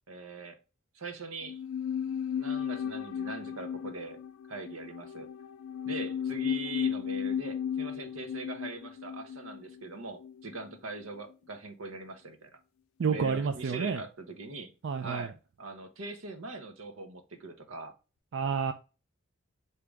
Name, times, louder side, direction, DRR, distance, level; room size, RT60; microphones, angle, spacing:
voice 1, 0.1-0.6 0.9-1.6 2.4-4.2 4.5-5.3 5.8-12.6 13.1-14.7 15.0-15.3 15.6-17.9, right 3 dB, 85° right, 7 dB, 0.9 m, -42 dB
sound 1, 1.4-10.8 11.0-11.1, left 8 dB, 75° left, 0.3 m, -35 dB
voice 2, 13.0-14.0 14.8-15.3 18.3-18.7, right 5 dB, 60° right, 7 dB, 0.4 m, -29 dB
4.9 x 2.9 x 3.3 m, 0.32 s
head